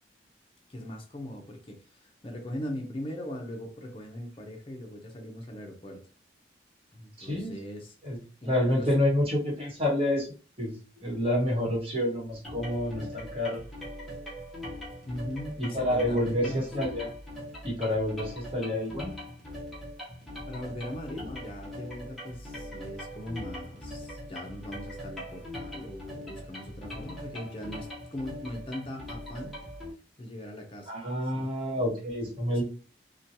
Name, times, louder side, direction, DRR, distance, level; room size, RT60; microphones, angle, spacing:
voice 1, 0.7-6.0 6.9-7.9 8.4-9.0 15.1-16.7 20.5-29.5 30.2-30.9 31.3-31.5 32.5-32.6, left 1 dB, 30° left, 2 dB, 0.5 m, -40 dB
voice 2, 7.2-7.5 8.0-10.3 10.6-10.7 11.0-13.6 15.6-17.1 17.6-19.1 30.9-32.6, left 1 dB, 30° right, -4 dB, 1.1 m, -28 dB
sound 1, 12.4-29.9, equal, ahead, 0.8 m, -41 dB
2.8 x 2.2 x 2.7 m, 0.36 s
head